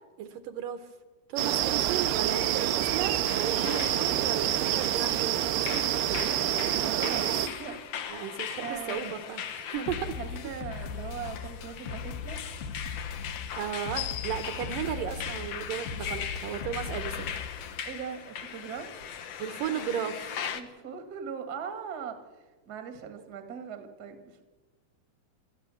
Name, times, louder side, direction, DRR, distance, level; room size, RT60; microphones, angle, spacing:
voice 1, 0.2-0.8 1.3-5.4 8.1-10.0 13.6-17.3 19.4-20.4, right 9 dB, 70° right, 9 dB, 2.2 m, -35 dB
sound 1, 1.4-7.5, right 12 dB, 85° right, 2.8 m, -27 dB
sound 2, 3.3-20.6, left 8 dB, 90° left, 1.3 m, -39 dB
voice 2, 5.7-9.1 9.7-12.4 17.8-19.0 19.7-19.9 20.5-24.4, right 7 dB, 45° right, 6 dB, 1.2 m, -40 dB
sound 3, 9.9-17.9, left 6 dB, 75° left, 2.8 m, -39 dB
27.0 x 13.5 x 7.0 m, 1.3 s
omnidirectional pair, 4.5 m